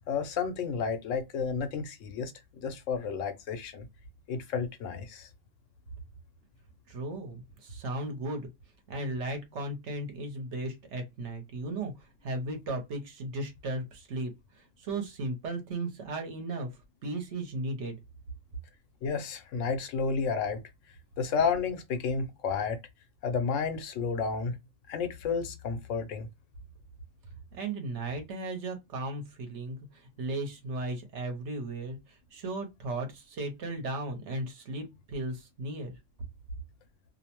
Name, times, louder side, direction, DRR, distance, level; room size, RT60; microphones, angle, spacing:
voice 1, 0.1-2.3 2.6-3.9 4.3-5.3 19.0-20.6 21.2-22.8 23.2-24.6 24.9-26.3, left 5 dB, 85° left, 1.0 m, -31 dB
voice 2, 6.9-8.5 8.9-14.3 14.6-16.7 17.0-18.0 27.5-35.9, right 2 dB, 70° right, 1.1 m, -36 dB
2.7 x 2.1 x 2.9 m
omnidirectional pair, 1.3 m